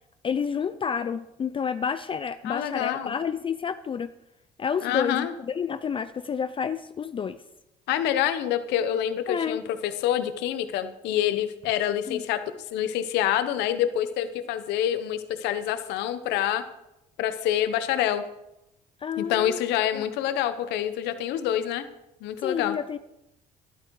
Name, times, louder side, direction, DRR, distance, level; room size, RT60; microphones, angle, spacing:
voice 1, 0.2-4.1 4.6-7.4 9.3-9.6 12.1-12.2 19.0-19.6 19.9-20.0 22.4-23.0, left 7 dB, 30° left, 12 dB, 0.5 m, -29 dB
voice 2, 2.4-3.2 4.8-5.3 7.9-12.4 12.7-16.6 17.2-18.2 19.2-21.9 22.2-22.8, left 11 dB, 90° left, 11 dB, 1.0 m, -27 dB
12.5 x 11.5 x 4.7 m, 0.88 s
cardioid pair, 110°, 17 cm